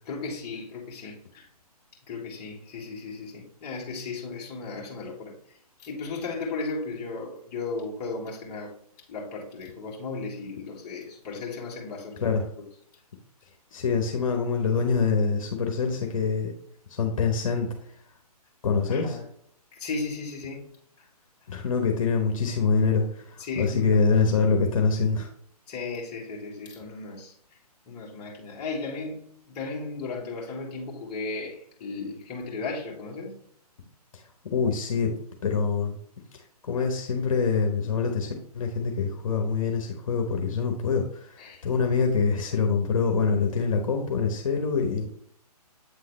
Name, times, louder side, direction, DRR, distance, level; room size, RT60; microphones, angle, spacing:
voice 1, 0.1-1.5 2.1-5.3 5.8-8.7 9.1-12.2 12.6-12.7 18.9-19.2 19.8-20.7 23.4-24.1 25.7-27.3 27.9-29.2 29.5-33.3 41.4-41.6, left 3 dB, 25° left, 1.6 m, -35 dB
voice 2, 13.7-16.5 16.9-17.7 18.6-19.2 21.5-25.3 34.1-34.2 34.5-35.1 35.4-36.0 36.6-45.1, left 5 dB, 55° left, 1.1 m, -25 dB
8.1 x 3.8 x 3.2 m
figure-of-eight pair, 140°, 20 cm